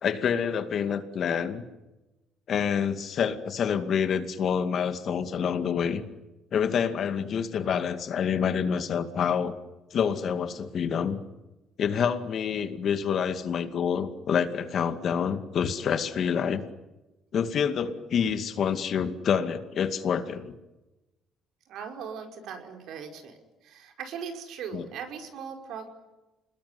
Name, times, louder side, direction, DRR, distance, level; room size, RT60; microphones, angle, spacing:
voice 1, 0.0-1.6 2.5-6.0 6.5-9.6 9.9-11.2 11.8-16.6 17.3-20.5 24.7-24.9, left 7 dB, 50° left, 9 dB, 2.3 m, -27 dB
voice 2, 21.7-25.9, right 7 dB, 70° right, 4 dB, 5.2 m, -39 dB
28.5 x 20.5 x 9.7 m, 1.1 s
cardioid pair, 125°, 0 cm